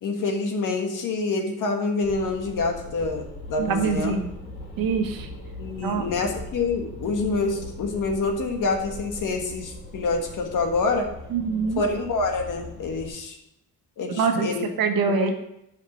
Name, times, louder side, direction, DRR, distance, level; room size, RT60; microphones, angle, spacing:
voice 1, 0.0-4.2 5.6-11.1 11.8-13.4 14.0-14.6 14.9-15.3, left 3 dB, 55° left, 3 dB, 1.7 m, -27 dB
sound 1, 2.0-13.1, left 1 dB, 25° left, 2.2 m, -40 dB
voice 2, 3.6-4.3 4.8-5.3 5.8-6.0 11.3-11.8 14.1-14.5 14.8-15.3, right 5 dB, 70° right, 5 dB, 1.4 m, -24 dB
11.0 x 5.8 x 5.3 m, 0.80 s
cardioid pair, 170°, 36 cm